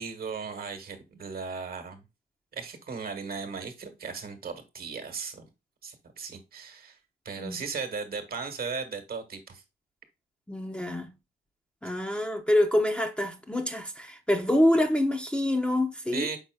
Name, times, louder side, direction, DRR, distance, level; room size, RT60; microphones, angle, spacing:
voice 1, 0.0-2.0 2.5-5.5 5.8-7.0 7.2-9.6 16.1-16.4, right 5 dB, 50° right, 1.3 m, -36 dB
voice 2, 10.5-11.1 11.8-16.3, left 1 dB, 5° left, 0.8 m, -26 dB
5.5 x 4.2 x 2.2 m
cardioid pair, 90°, 20 cm